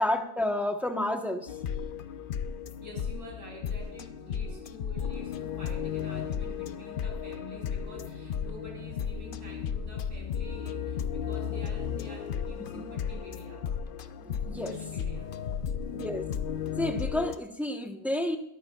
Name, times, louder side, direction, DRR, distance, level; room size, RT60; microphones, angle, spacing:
voice 1, 0.0-1.5 14.2-14.7 15.9-16.2 16.8-18.4, left 1 dB, ahead, 4 dB, 0.7 m, -30 dB
sound 1, 1.5-17.4, left 7 dB, 90° left, 0.4 m, -34 dB
voice 2, 2.8-13.7 14.6-15.7, left 1 dB, 75° right, -1 dB, 3.8 m, -47 dB
21.5 x 12.5 x 2.3 m, 0.75 s
omnidirectional pair, 1.6 m